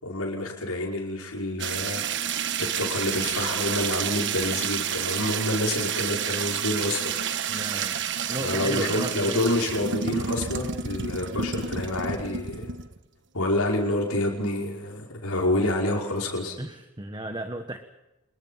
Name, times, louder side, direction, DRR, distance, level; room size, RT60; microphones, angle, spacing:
voice 1, 0.0-2.0 2.6-7.6 8.4-12.7 13.3-16.6, left 1 dB, 80° left, -1 dB, 5.4 m, -28 dB
sound 1, 1.6-13.0, right 7 dB, 55° right, 1.4 m, -30 dB
voice 2, 7.5-8.0 8.3-9.4 16.6-17.8, right 1 dB, 20° right, 7 dB, 1.4 m, -34 dB
27.5 x 22.0 x 5.8 m, 0.95 s
head